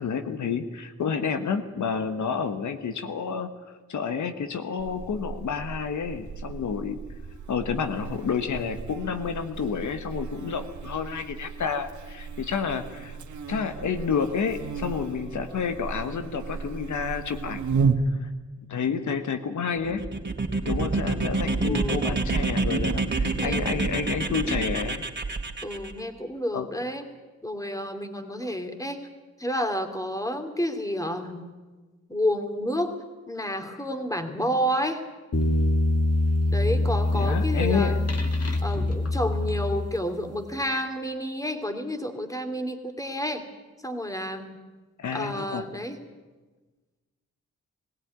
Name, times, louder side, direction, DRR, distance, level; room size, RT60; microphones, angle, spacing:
voice 1, 0.0-3.5 3.9-7.0 7.5-13.2 13.5-17.8 18.1-18.3 18.7-20.0 20.7-25.0 26.5-26.7 37.1-38.0 45.0-45.6, left 6 dB, 80° left, 8 dB, 1.3 m, -29 dB
Buzz, 4.8-17.9, right 5 dB, 75° right, 1.8 m, -34 dB
sound 1, 19.8-25.9, right 3 dB, 40° right, 2.9 m, -27 dB
voice 2, 21.6-22.5 23.4-24.0 24.4-24.7 25.6-27.1 27.4-29.0 29.4-31.5 32.1-33.0 33.3-35.0 36.5-38.1 38.6-43.5 43.8-44.6 45.1-46.0, equal, 10° left, 6 dB, 2.8 m, -30 dB
sound 2, 35.3-40.2, left 1 dB, 55° left, 2.4 m, -24 dB
20.5 x 16.5 x 9.5 m, 1.3 s
cardioid pair, 65°, 29 cm